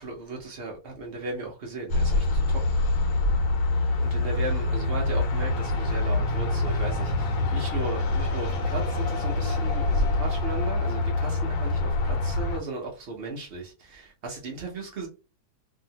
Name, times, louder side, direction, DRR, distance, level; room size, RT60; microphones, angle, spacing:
voice 1, 0.0-2.6 4.0-15.1, right 3 dB, 85° right, 0.5 m, -36 dB
sound 1, 1.9-12.6, left 2 dB, 85° left, 1.5 m, -25 dB
3.0 x 2.7 x 2.7 m
omnidirectional pair, 2.0 m